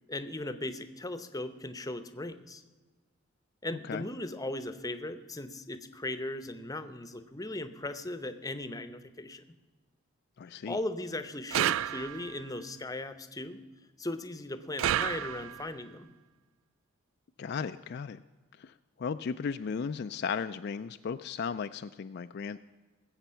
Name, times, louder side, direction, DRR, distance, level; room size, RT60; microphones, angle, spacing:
voice 1, 0.1-2.6 3.6-9.4 10.6-13.6 14.0-16.1, left 2 dB, 15° left, 11 dB, 0.7 m, -38 dB
voice 2, 10.4-10.8 17.4-18.2 18.6-18.7 19.0-22.6, left 6 dB, 50° left, 9 dB, 0.3 m, -35 dB
sound 1, 11.5-12.4 14.8-15.7, right 11 dB, 70° right, 0.3 m, -30 dB
20.0 x 8.0 x 5.7 m, 1.3 s
head